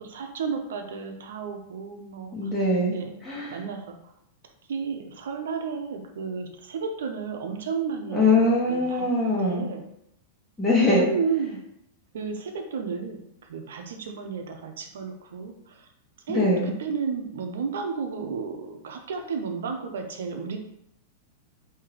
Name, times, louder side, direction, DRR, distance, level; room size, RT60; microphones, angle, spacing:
voice 1, 0.0-2.5 2.9-3.1 3.5-4.0 4.7-8.4 8.7-9.8 11.0-11.6 12.1-15.9 16.3-20.6, right 5 dB, 80° right, 5 dB, 0.6 m, -32 dB
voice 2, 2.3-3.6 8.1-9.6 10.6-11.1 16.3-16.7, left 2 dB, 10° left, -6 dB, 1.2 m, -22 dB
3.4 x 2.8 x 3.3 m, 0.77 s
hypercardioid pair, 125°, 0 cm